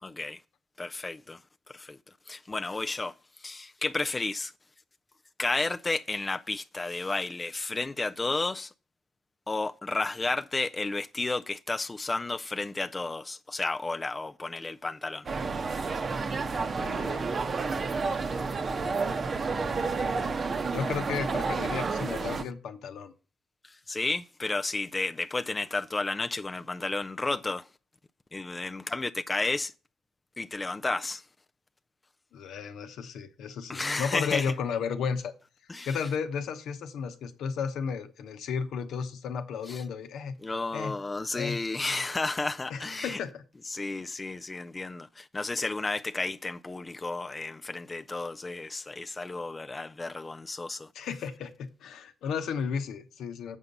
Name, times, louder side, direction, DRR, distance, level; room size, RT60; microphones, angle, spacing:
voice 1, 0.0-0.4 0.8-1.4 1.7-2.0 2.3-4.5 5.4-8.7 9.5-15.3 23.6-27.7 28.3-29.7 30.4-31.2 33.7-34.5 35.7-36.0 39.7-39.8 40.4-43.2 43.7-50.9, left 3 dB, 20° left, 0.3 m, -32 dB
sound 1, 15.3-22.4, right 4 dB, 40° right, 0.8 m, -30 dB
voice 2, 16.8-17.6 18.1-18.4 19.6-20.0 20.7-23.1 32.3-35.3 35.8-40.3 40.7-40.9 41.3-41.6 42.7-43.4 50.9-53.6, left 6 dB, 75° left, 0.9 m, -34 dB
7.2 x 5.6 x 5.3 m
cardioid pair, 90°, 0 cm